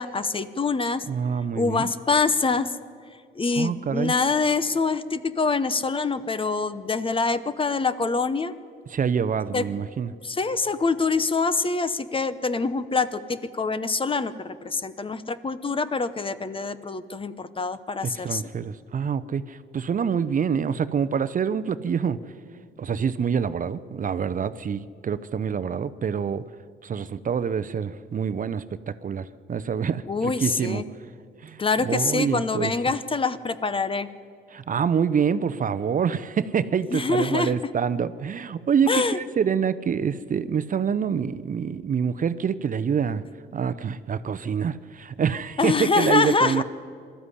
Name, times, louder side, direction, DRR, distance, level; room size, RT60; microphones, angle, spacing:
voice 1, 0.0-1.0 1.5-2.7 3.4-8.5 9.5-9.7 10.2-18.4 30.1-30.8 31.6-34.1 36.9-37.6 38.9-39.2 45.6-46.6, left 4 dB, 25° left, 14 dB, 0.8 m, -25 dB
voice 2, 1.1-1.9 3.6-4.1 8.9-10.1 18.0-22.2 22.8-26.4 26.8-30.8 31.4-32.7 34.5-43.2 43.5-46.6, right 7 dB, 40° right, 14 dB, 0.7 m, -26 dB
20.0 x 13.0 x 9.9 m, 2.2 s
cardioid pair, 90°, 20 cm